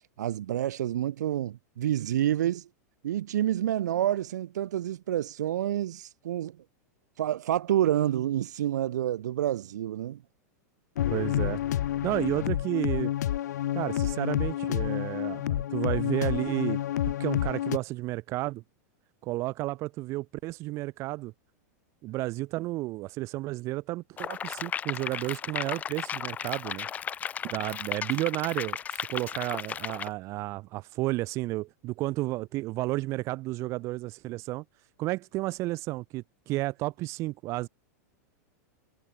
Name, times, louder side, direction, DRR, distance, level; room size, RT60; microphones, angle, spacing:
voice 1, 0.2-2.7 3.0-6.6 7.2-10.2, right 12 dB, 90° right, 1.5 m, -28 dB
sound 1, 11.0-17.8, left 12 dB, 80° left, 5.8 m, -29 dB
voice 2, 11.1-11.6 12.0-13.1 13.7-16.8 17.1-18.6 19.2-21.3 22.0-26.9 27.4-34.6 35.0-37.7, right 19 dB, 30° right, 3.8 m, -32 dB
sound 2, 24.2-30.1, left 8 dB, 15° left, 4.4 m, -35 dB
supercardioid pair, 165°, 9 cm